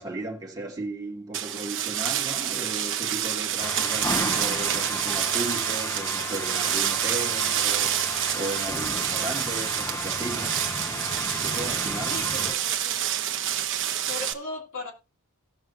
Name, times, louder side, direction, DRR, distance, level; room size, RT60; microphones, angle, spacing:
voice 1, 0.0-10.7 11.4-12.5, right 2 dB, 15° right, 2.2 m, -36 dB
sound 1, 1.3-14.3, right 11 dB, 60° right, 0.9 m, -28 dB
sound 2, 3.6-12.5, left 1 dB, 10° left, 0.7 m, -34 dB
voice 2, 12.1-13.1 13.9-14.9, left 3 dB, 65° left, 3.4 m, -37 dB
18.0 x 6.2 x 2.6 m
head